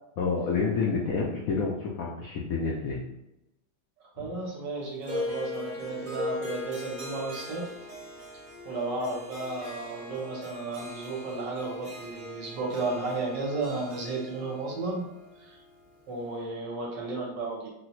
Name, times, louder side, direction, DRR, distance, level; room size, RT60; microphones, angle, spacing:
voice 1, 0.2-3.0 4.2-4.3, left 4 dB, 90° left, -2 dB, 0.7 m, -29 dB
voice 2, 4.2-7.7 8.6-15.0 15.4-15.6 16.1-17.7, right 3 dB, 70° right, -2 dB, 1.3 m, -33 dB
Harp, 5.0-16.3, left 2 dB, 50° right, 1.3 m, -40 dB
4.0 x 2.1 x 2.9 m, 0.89 s
omnidirectional pair, 2.0 m